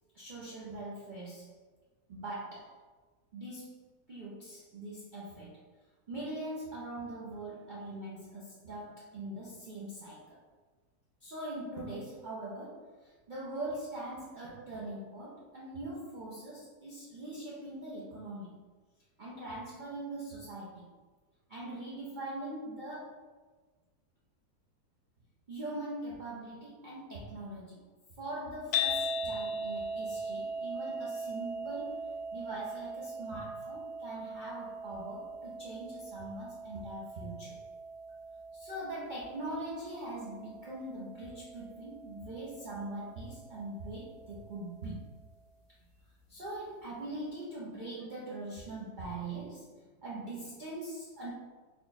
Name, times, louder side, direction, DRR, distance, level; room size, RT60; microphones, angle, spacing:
voice 1, 0.1-1.5 2.1-2.7 3.3-5.6 6.1-10.4 11.2-12.9 13.3-18.6 19.2-20.9 21.5-23.2 25.5-27.8 28.2-37.6 38.5-45.0 46.3-51.3, right 2 dB, 75° right, -6 dB, 0.4 m, -42 dB
sound 1, 28.7-45.0, left 1 dB, 75° left, 1.1 m, -40 dB
3.7 x 2.3 x 3.9 m, 1.3 s
omnidirectional pair, 1.7 m